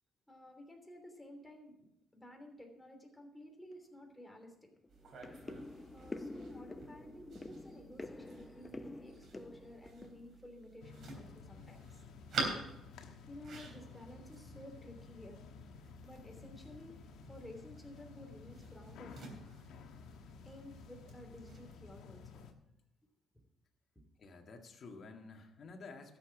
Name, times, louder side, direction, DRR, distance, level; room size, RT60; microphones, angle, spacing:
voice 1, 0.3-4.7 5.9-12.0 13.3-15.4 16.0-19.2 20.4-22.5, left 1 dB, 5° left, 2 dB, 3.1 m, -53 dB
sound 1, 3.7-3.8 4.2-4.4 4.7-11.3 11.5-12.2 12.5-12.8 13.1-13.2 13.6-13.8 14.2-14.3 14.8-15.3 15.9-16.1 16.4-17.1 17.4-17.5, left 2 dB, 25° left, 0.7 m, -49 dB
sound 2, 4.9-21.8, right 3 dB, 60° right, 3.5 m, -48 dB
sound 3, 10.8-22.5, left 6 dB, 85° left, 1.3 m, -54 dB
voice 2, 24.2-26.2, left 3 dB, 55° left, 3 dB, 1.9 m, -51 dB
13.0 x 7.2 x 6.0 m, 0.85 s
cardioid pair, 90°, 0 cm